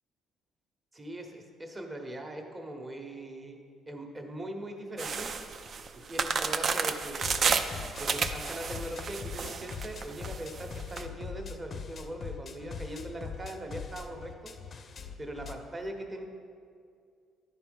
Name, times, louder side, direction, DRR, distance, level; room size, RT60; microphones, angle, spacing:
voice 1, 0.9-3.6 3.9-5.3 5.9-7.2 8.0-14.5 15.2-16.2, right 1 dB, 20° right, 3 dB, 1.0 m, -40 dB
sound 1, 5.0-11.0, right 5 dB, 45° right, 0.5 m, -31 dB
sound 2, 7.2-15.5, left 5 dB, 40° left, 0.5 m, -42 dB
11.0 x 4.5 x 5.2 m, 2.3 s
cardioid pair, 120°, 0 cm